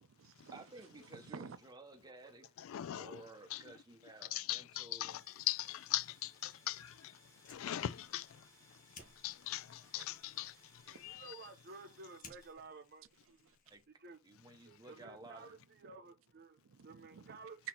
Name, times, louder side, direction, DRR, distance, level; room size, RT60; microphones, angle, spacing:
voice 1, 0.0-1.6 7.2-7.7 8.7-9.2 10.5-10.6 10.9-11.3 13.2-13.8 15.0-15.2 15.5-16.0 16.6-17.5, right 5 dB, 80° right, 0.5 m, -56 dB
voice 2, 0.5-2.6 3.0-5.2 13.7-13.8 14.2-15.5, right 2 dB, 20° right, 0.7 m, -54 dB
voice 3, 2.6-3.6 4.3-7.1 7.5-8.3 9.2-10.5 10.9-11.4, left 13 dB, 85° left, 0.3 m, -40 dB
sound 1, 5.1-12.5, equal, 15° left, 1.5 m, -66 dB
Fire, 7.3-14.1, left 4 dB, 45° left, 1.1 m, -62 dB
voice 4, 10.9-13.0 14.0-14.2 14.6-17.6, right 3 dB, 50° right, 0.8 m, -54 dB
4.0 x 2.8 x 4.4 m
head